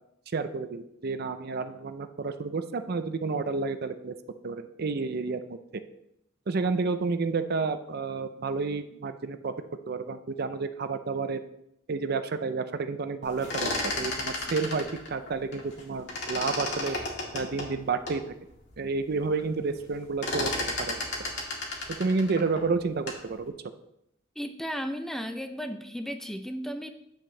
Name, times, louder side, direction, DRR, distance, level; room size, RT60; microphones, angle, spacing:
voice 1, 0.3-4.1 4.4-5.6 6.5-9.5 9.9-11.4 11.9-17.0 17.3-18.3 18.8-21.0 22.0-23.5, right 4 dB, 55° right, 10 dB, 0.5 m, -30 dB
sound 1, 13.3-15.8 16.1-18.2 18.7-18.8 19.1-19.5 19.7-23.3, left 2 dB, 65° left, 2.0 m, -33 dB
voice 2, 24.4-26.9, equal, ahead, 6 dB, 0.4 m, -34 dB
8.8 x 7.6 x 3.2 m, 0.80 s
head